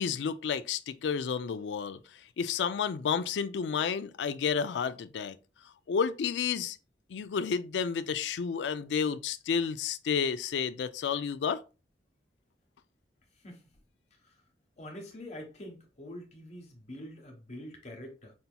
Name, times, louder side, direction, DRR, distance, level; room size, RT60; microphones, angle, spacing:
voice 1, 0.0-2.0 2.4-5.4 5.9-6.8 7.1-11.6, left 6 dB, 80° left, 0.4 m, -31 dB
voice 2, 14.8-18.3, left 1 dB, 40° left, 1.1 m, -45 dB
5.4 x 2.8 x 2.2 m
head